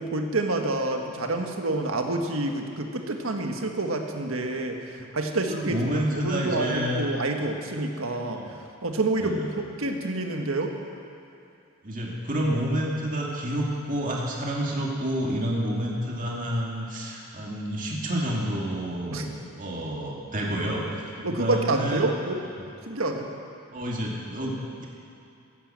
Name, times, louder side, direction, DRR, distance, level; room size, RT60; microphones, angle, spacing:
voice 1, 0.0-8.4 8.8-10.8 19.1-19.2 21.2-22.4 22.8-23.3, right 2 dB, 70° right, 3 dB, 1.5 m, -28 dB
voice 2, 5.5-7.0 8.3-8.5 9.2-9.5 11.8-19.3 19.6-22.0 22.6-22.7 23.7-24.9, equal, 40° right, -3 dB, 2.3 m, -29 dB
15.0 x 11.5 x 7.6 m, 2.7 s
head